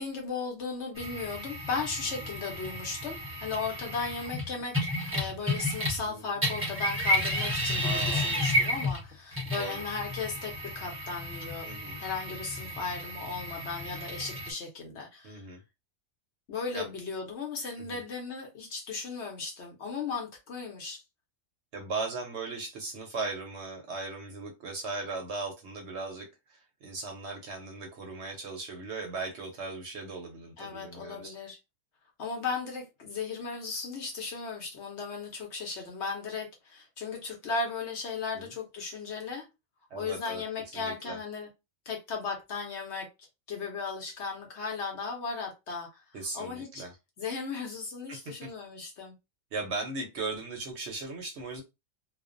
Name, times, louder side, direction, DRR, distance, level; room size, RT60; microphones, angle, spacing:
voice 1, 0.0-11.7 12.0-15.4 16.5-21.0 30.6-31.6 32.2-39.5 40.0-41.5 41.9-43.1 43.5-46.9 47.2-49.1, left 4 dB, 60° left, 0.9 m, -36 dB
sound 1, 1.0-6.1 6.4-14.5, left 1 dB, 20° right, 0.4 m, -32 dB
voice 2, 7.8-8.3 9.6-9.8 11.6-12.0 15.2-15.6 16.7-16.9 17.8-18.0 21.7-31.3 38.3-38.5 39.9-40.4 40.7-41.2 46.1-46.9 48.1-48.5 49.5-51.6, right 3 dB, 65° right, 0.8 m, -38 dB
2.4 x 2.1 x 2.4 m
omnidirectional pair, 1.5 m